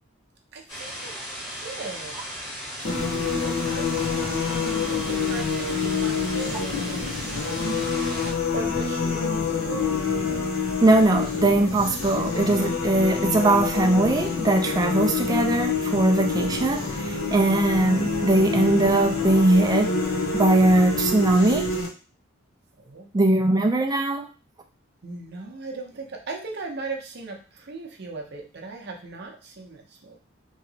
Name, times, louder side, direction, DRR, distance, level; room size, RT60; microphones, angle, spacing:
voice 1, 0.5-1.1 1.6-2.2 2.8-9.9 22.8-23.1 25.0-30.2, right 3 dB, 50° right, 1 dB, 0.6 m, -38 dB
sound 1, 0.7-8.3, equal, 20° left, 1.3 m, -36 dB
sound 2, 2.8-21.9, left 4 dB, 85° left, 0.9 m, -27 dB
voice 2, 10.8-19.9 20.3-21.7 23.1-24.3, right 2 dB, 20° right, 4 dB, 0.3 m, -20 dB
3.1 x 2.8 x 2.7 m, 0.36 s
head